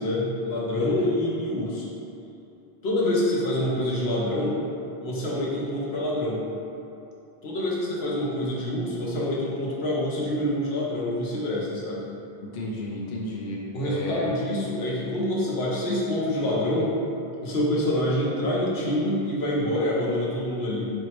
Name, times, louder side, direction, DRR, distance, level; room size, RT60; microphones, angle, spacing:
voice 1, 0.0-1.9 2.8-4.6 5.0-6.4 7.4-12.0 13.7-16.9 17.4-20.8, left 1 dB, 80° left, -5 dB, 1.0 m, -26 dB
voice 2, 0.8-1.1 12.4-14.3, left 1 dB, 60° left, -3 dB, 0.7 m, -34 dB
4.7 x 2.0 x 4.2 m, 2.8 s
omnidirectional pair, 1.0 m